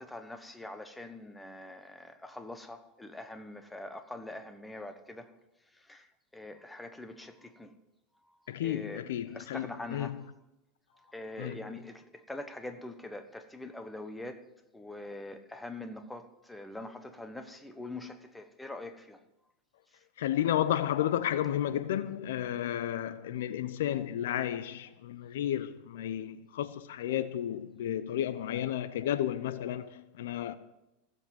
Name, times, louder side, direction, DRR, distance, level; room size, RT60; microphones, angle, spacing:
voice 1, 0.0-5.3 5.8-6.1 6.3-7.7 8.6-9.0 9.3-10.2 11.0-14.4 14.7-19.2, left 2 dB, 5° left, 1.3 m, -43 dB
voice 2, 8.5-10.2 11.4-11.6 20.2-30.5, left 11 dB, 80° left, 0.8 m, -32 dB
16.0 x 7.9 x 7.8 m
hypercardioid pair, 115°, 0 cm